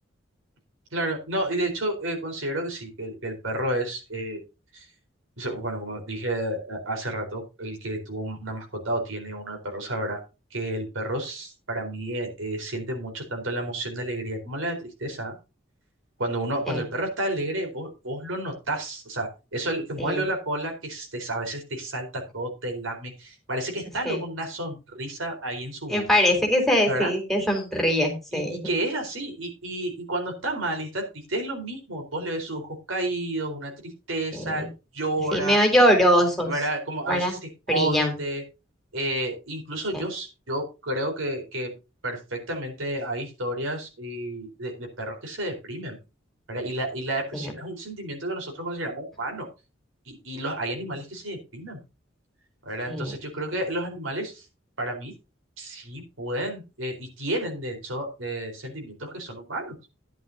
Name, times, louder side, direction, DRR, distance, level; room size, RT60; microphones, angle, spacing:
voice 1, 0.9-4.4 4.7-4.9 5.4-10.2 10.5-15.3 16.2-26.0 26.9-27.1 28.3-33.7 34.1-34.7 34.9-35.6 36.4-37.4 37.7-38.4 38.9-41.7 42.0-46.0 46.5-49.5 50.1-51.8 52.7-54.5 54.8-55.1 55.6-59.8, right 1 dB, 85° right, 3 dB, 4.3 m, -31 dB
voice 2, 25.9-28.6 34.3-34.6 35.3-36.5 37.1-37.3 37.7-38.1 47.3-47.4 52.9-53.2, equal, ahead, 2 dB, 3.5 m, -22 dB
13.5 x 10.5 x 2.8 m, 0.28 s
head